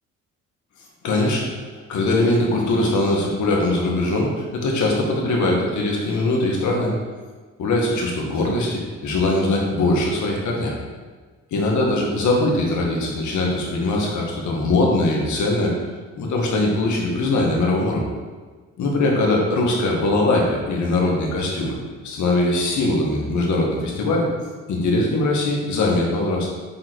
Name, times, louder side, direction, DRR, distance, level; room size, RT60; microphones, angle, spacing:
voice 1, 1.0-6.9 7.6-10.7 11.5-15.7 16.1-18.1 18.8-21.8 22.0-24.3 24.7-26.5, left 2 dB, 70° left, -1 dB, 1.7 m, -21 dB
7.4 x 3.9 x 4.6 m, 1.4 s
cardioid pair, 90°, 30 cm